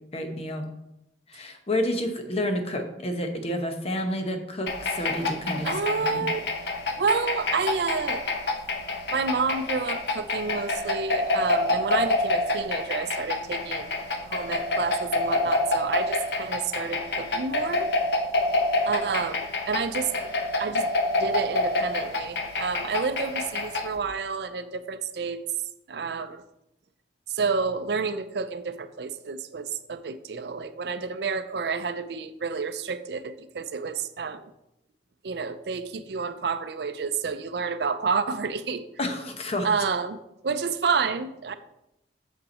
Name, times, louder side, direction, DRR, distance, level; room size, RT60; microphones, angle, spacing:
voice 1, 0.1-0.7 1.3-6.2 39.0-39.7, left 1 dB, 35° left, 6 dB, 0.9 m, -30 dB
sound 1, 4.7-24.0, left 2 dB, 65° left, 0.8 m, -28 dB
voice 2, 5.6-6.4 7.0-8.2 9.1-13.9 14.3-17.9 18.8-20.1 20.6-25.4 25.9-26.4 27.3-34.5 35.2-38.8 39.6-40.2 40.4-41.5, right 5 dB, 65° right, 11 dB, 0.5 m, -29 dB
6.7 x 5.3 x 4.2 m, 0.85 s
head